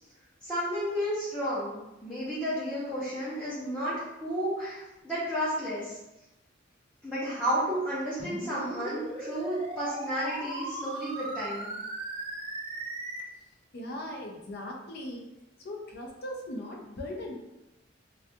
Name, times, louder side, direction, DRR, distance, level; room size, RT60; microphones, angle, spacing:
voice 1, 0.4-6.0 7.0-11.7, equal, 5° left, -12 dB, 0.6 m, -32 dB
sound 1, 8.2-13.2, right 2 dB, 30° right, 0.3 m, -38 dB
voice 2, 13.7-15.2 15.6-17.3, left 1 dB, 55° left, 1 dB, 0.5 m, -39 dB
2.3 x 2.2 x 2.7 m, 0.94 s
head